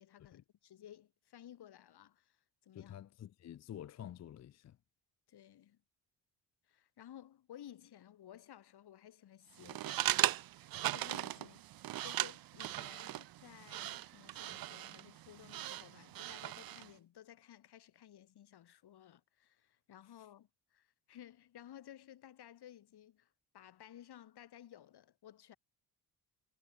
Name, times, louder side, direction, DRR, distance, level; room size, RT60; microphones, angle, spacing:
voice 1, 0.0-2.4 2.6-3.0 5.3-5.8 6.7-23.3 23.5-25.6, left 11 dB, 70° left, 3.1 m, -56 dB
voice 2, 2.7-4.8 20.2-20.3, left 11 dB, 40° left, 0.5 m, -49 dB
sound 1, 9.6-16.9, right 14 dB, 55° right, 0.6 m, -38 dB
sound 2, 12.7-14.9 15.2-15.3, right 12 dB, 75° right, 6.2 m, -72 dB
cardioid pair, 85°, 41 cm